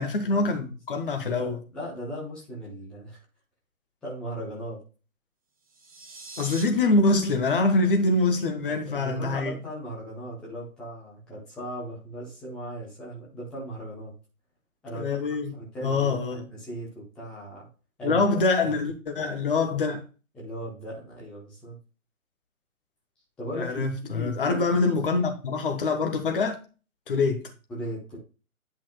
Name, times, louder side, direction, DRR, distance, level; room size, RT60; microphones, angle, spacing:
voice 1, 0.0-1.6 6.4-9.6 14.9-15.6 15.8-16.4 18.0-20.0 23.6-26.6 27.1-27.5, left 3 dB, 35° left, 1.4 m, -25 dB
voice 2, 1.4-3.2 4.0-4.8 8.7-14.1 14.8-15.1 15.5-17.7 18.0-18.2 18.6-18.7 20.3-21.8 23.4-24.8 27.7-28.2, equal, ahead, 0.8 m, -37 dB
sound 1, 5.6-6.6, right 3 dB, 25° right, 0.9 m, -42 dB
10.5 x 5.8 x 2.3 m
figure-of-eight pair, 140°, 44 cm